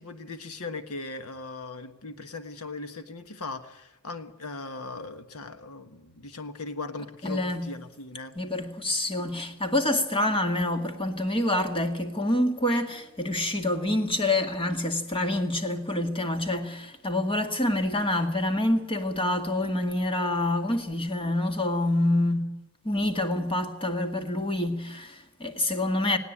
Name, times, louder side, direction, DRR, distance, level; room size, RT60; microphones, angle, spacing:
voice 1, 0.0-8.3, left 3 dB, 80° left, 1.4 m, -39 dB
voice 2, 7.2-7.7 8.4-22.4 22.8-26.2, left 1 dB, 25° left, 1.9 m, -27 dB
19.0 x 17.5 x 8.6 m
head